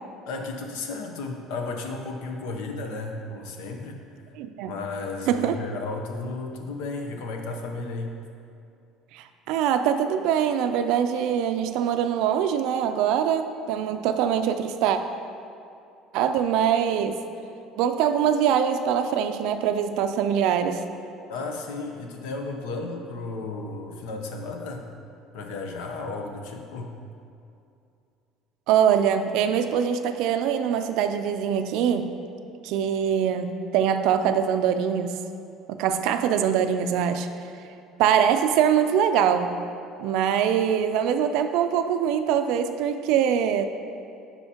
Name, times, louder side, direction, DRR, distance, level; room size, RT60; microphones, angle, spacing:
voice 1, 0.3-4.0 4.7-8.1 21.3-24.9 25.3-26.9, left 3 dB, 90° left, 3 dB, 0.8 m, -34 dB
voice 2, 4.3-4.7 5.3-5.5 9.1-15.0 16.1-17.2 17.8-20.8 28.7-32.1 32.6-35.2 35.7-37.3 38.0-39.6 40.0-43.7, right 8 dB, 65° right, 8 dB, 0.3 m, -23 dB
9.9 x 5.6 x 2.9 m, 2.6 s
cardioid pair, 175°, 0 cm